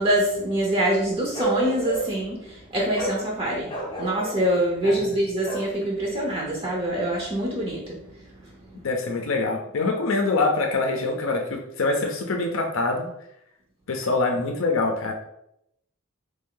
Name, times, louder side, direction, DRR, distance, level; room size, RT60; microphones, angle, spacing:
voice 1, 0.0-8.0 8.4-8.5, right 1 dB, 25° right, -2 dB, 0.6 m, -25 dB
Bark, 1.3-2.2 2.9-3.2 3.7-4.4 5.4-5.7, right 3 dB, 20° left, 0.6 m, -29 dB
voice 2, 8.8-13.1 13.9-15.1, left 3 dB, 70° left, 3 dB, 0.5 m, -24 dB
3.2 x 2.7 x 3.7 m, 0.77 s
head